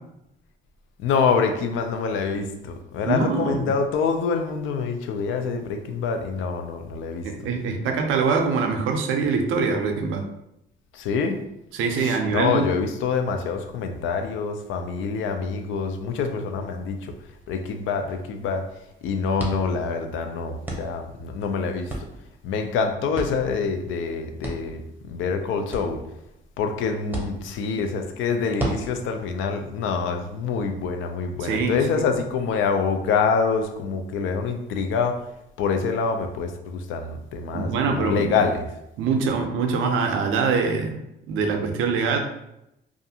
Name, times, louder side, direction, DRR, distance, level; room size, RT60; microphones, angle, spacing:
voice 1, 1.0-7.3 10.9-11.4 11.9-17.1 17.5-18.6 19.0-21.9 22.4-26.0 26.6-35.3 35.6-38.7, left 5 dB, 80° left, 6 dB, 0.4 m, -26 dB
voice 2, 3.1-3.7 7.2-10.2 11.7-12.7 31.4-32.1 37.5-38.4 39.0-41.0 41.3-42.2, right 5 dB, 85° right, 4 dB, 0.5 m, -24 dB
sound 1, 16.8-30.9, right 1 dB, 10° right, 0.6 m, -38 dB
2.5 x 2.4 x 2.7 m, 0.85 s
cardioid pair, 90°, 20 cm